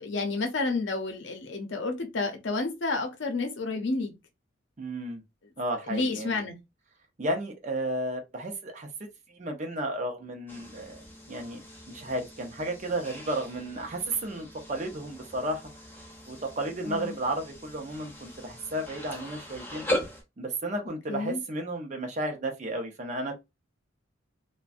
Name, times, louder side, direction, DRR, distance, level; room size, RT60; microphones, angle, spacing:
voice 1, 0.0-4.1 5.9-6.6 16.9-17.1 21.1-21.4, left 3 dB, 65° left, 0.7 m, -30 dB
voice 2, 4.8-5.2 5.6-6.4 7.2-8.9 9.3-11.0 11.3-15.9 16.3-19.8 20.4-23.4, right 1 dB, 35° right, 0.5 m, -33 dB
sound 1, 10.5-20.2, left 1 dB, 10° left, 0.7 m, -39 dB
2.5 x 2.1 x 2.4 m
head